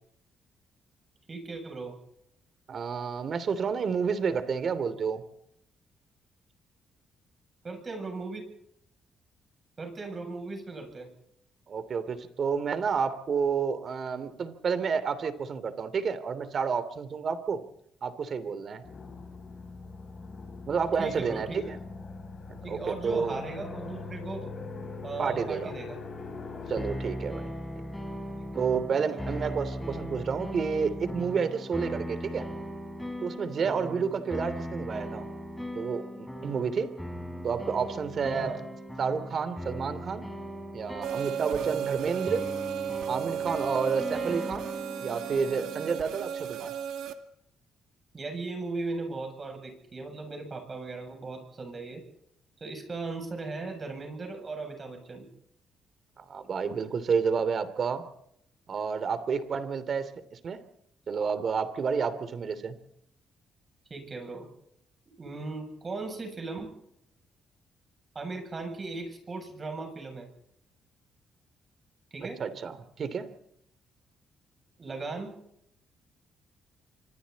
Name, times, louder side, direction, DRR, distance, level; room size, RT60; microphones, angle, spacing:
voice 1, 1.3-2.0 7.6-8.4 9.8-11.1 21.0-21.6 22.6-24.5 25.0-26.0 28.4-28.5 29.1-29.2 33.6-33.9 38.3-38.6 48.1-52.0 52.6-55.3 63.9-64.5 65.2-66.7 68.1-70.3 72.1-72.4 74.8-75.3, right 3 dB, 35° right, 4 dB, 7.7 m, -37 dB
voice 2, 2.7-5.2 11.7-17.6 18.0-18.8 20.7-21.8 22.5-23.4 25.2-25.7 26.7-27.5 28.5-32.5 33.2-35.3 35.7-36.9 37.4-38.5 39.0-40.3 40.7-42.5 43.1-44.7 45.0-46.7 56.2-58.0 58.7-60.6 61.1-62.8 72.4-73.3, right 6 dB, 50° right, 12 dB, 2.9 m, -30 dB
sound 1, 18.8-26.9, left 4 dB, 40° left, 7.5 m, -41 dB
sound 2, 26.8-46.0, equal, 5° left, 5.1 m, -38 dB
sound 3, 41.0-47.1, right 8 dB, 85° right, 2.3 m, -34 dB
27.5 x 25.0 x 4.2 m, 0.74 s
cardioid pair, 90°, 0 cm